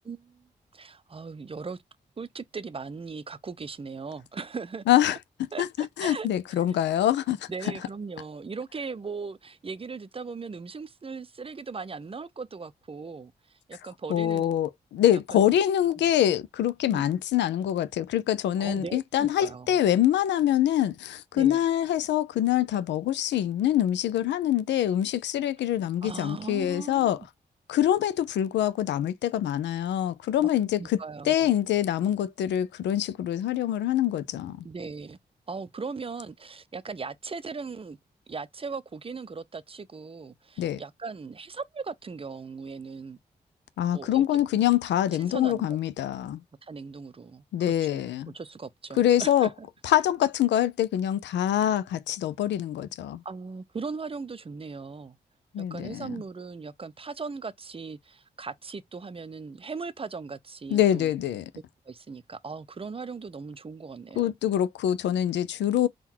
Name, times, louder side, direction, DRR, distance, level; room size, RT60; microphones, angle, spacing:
voice 1, 0.0-1.8 2.2-4.8 5.5-6.3 7.5-14.5 15.1-15.2 16.0-16.1 16.9-17.1 18.6-19.8 21.3-21.6 26.0-27.1 30.4-30.5 30.8-31.5 34.6-35.2 35.5-38.0 38.3-43.2 43.9-44.4 45.2-45.8 46.6-49.7 53.2-55.2 55.6-61.1 61.9-64.3, right 4 dB, 30° right, 0.5 m, -38 dB
voice 2, 4.9-5.2 5.6-7.5 14.1-27.2 27.7-31.0 31.3-34.7 40.6-40.8 43.8-46.4 47.5-48.3 49.0-49.5 49.8-53.2 55.5-56.2 60.7-61.4 64.2-65.9, left 11 dB, 80° left, 0.4 m, -25 dB
3.7 x 2.2 x 4.2 m
supercardioid pair, 40°, 18 cm